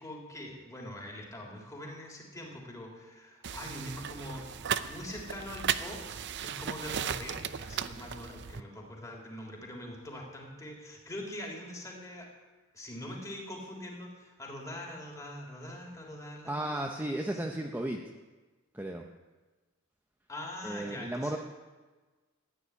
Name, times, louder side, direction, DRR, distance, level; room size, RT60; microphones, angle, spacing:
voice 1, 0.0-12.3 12.7-17.5 20.3-21.4, left 1 dB, 15° left, -1 dB, 3.5 m, -43 dB
sound 1, 3.4-8.6, right 8 dB, 55° right, 0.6 m, -36 dB
voice 2, 16.5-18.0 18.7-19.0 20.6-21.4, right 1 dB, 10° right, 2 dB, 0.8 m, -34 dB
14.5 x 9.8 x 9.8 m, 1.3 s
head